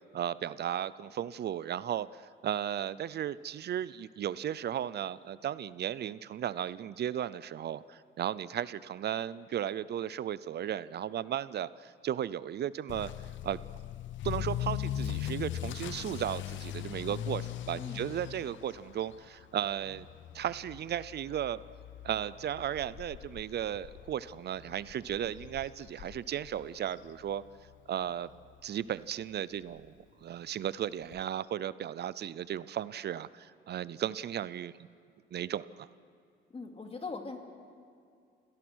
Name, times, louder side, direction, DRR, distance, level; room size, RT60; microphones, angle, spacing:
voice 1, 0.1-13.1 13.4-13.6 14.2-20.1 20.3-21.6 22.0-27.4 27.9-28.3 28.6-29.9 30.2-34.7 35.3-35.9, right 10 dB, 55° right, 18 dB, 0.6 m, -35 dB
Motor vehicle (road) / Accelerating revving vroom, 12.9-27.7 28.0-28.4 28.9-29.0 29.3-29.4 29.7-29.8 31.1-31.2, left 11 dB, 75° left, 0.6 m, -40 dB
voice 2, 17.7-18.1 36.5-37.4, left 4 dB, 30° left, 3 dB, 2.7 m, -41 dB
27.0 x 18.0 x 6.3 m, 2.3 s
cardioid pair, 90°, 20 cm